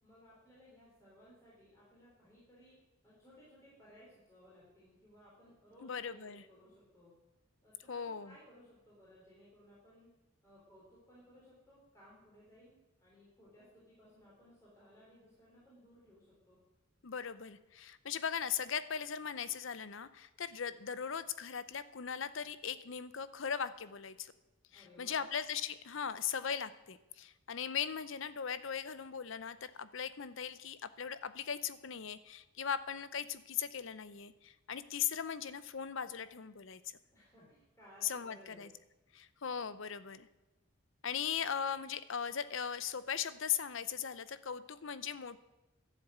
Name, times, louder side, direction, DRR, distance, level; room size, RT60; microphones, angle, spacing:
voice 1, 0.0-2.8 3.0-7.1 7.6-10.1 10.4-12.7 13.0-16.6 24.7-25.3 37.1-38.7, equal, 15° left, -8 dB, 3.8 m, -60 dB
voice 2, 5.8-6.4 7.9-8.3 17.0-24.3 24.7-36.8 38.0-38.7 39.1-40.3 41.0-45.4, left 7 dB, 60° left, 14 dB, 0.6 m, -39 dB
12.0 x 7.3 x 8.0 m, 1.1 s
head